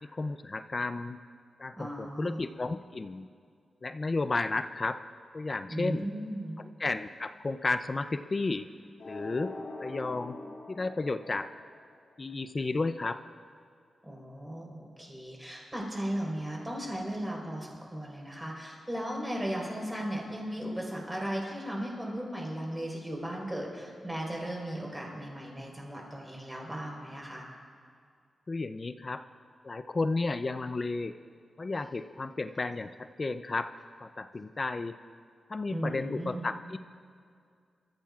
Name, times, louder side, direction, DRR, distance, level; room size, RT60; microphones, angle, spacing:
voice 1, 0.0-1.2 1.6-3.3 3.8-5.0 5.3-6.1 6.6-8.7 9.0-9.5 9.8-10.4 10.7-11.5 12.2-13.2 28.5-29.2 29.6-31.1 31.6-33.7 34.0-35.0 35.5-36.8, left 3 dB, 35° left, 11 dB, 0.4 m, -33 dB
voice 2, 1.8-2.4 5.7-6.6 14.0-27.5 35.7-36.4, right 1 dB, 10° right, -2 dB, 4.2 m, -36 dB
sound 1, 9.0-12.0, left 2 dB, 75° left, 2.9 m, -43 dB
27.0 x 14.5 x 2.4 m, 2.2 s
wide cardioid pair, 105°, 0 cm